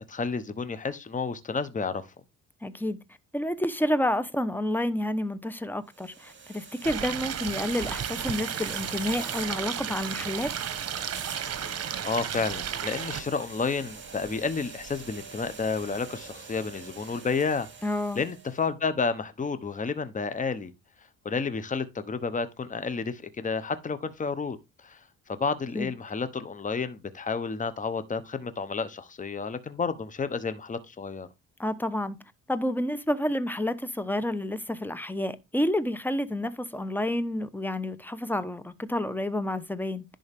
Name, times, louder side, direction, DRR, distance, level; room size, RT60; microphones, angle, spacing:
voice 1, 0.1-2.0 11.6-11.7 12.0-17.7 18.2-20.7 21.2-24.6 24.8-25.0 25.3-31.3, left 5 dB, 25° left, 1.0 m, -31 dB
voice 2, 2.6-3.0 3.3-10.5 17.8-18.2 25.7-25.9 31.6-32.2 32.5-40.0, left 1 dB, 5° left, 0.9 m, -29 dB
sound 1, 5.9-18.6, right 5 dB, 40° right, 2.9 m, -44 dB
Stream, 6.8-13.2, right 9 dB, 55° right, 1.3 m, -33 dB
10.5 x 3.8 x 3.6 m
cardioid pair, 90°, 30 cm